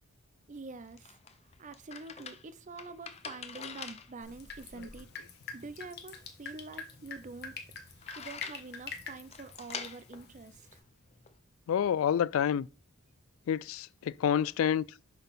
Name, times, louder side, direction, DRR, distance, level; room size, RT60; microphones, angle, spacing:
sound 1, 0.5-11.4, left 6 dB, 30° left, 0.5 m, -47 dB
voice 1, 0.5-1.2 1.6-5.1 5.5-7.6 8.2-10.6, right 3 dB, 35° right, 0.5 m, -46 dB
Drip, 4.2-10.8, left 5 dB, 50° left, 1.3 m, -46 dB
voice 2, 11.7-12.7 13.5-14.9, left 8 dB, 80° left, 0.3 m, -28 dB
6.7 x 4.0 x 5.7 m
head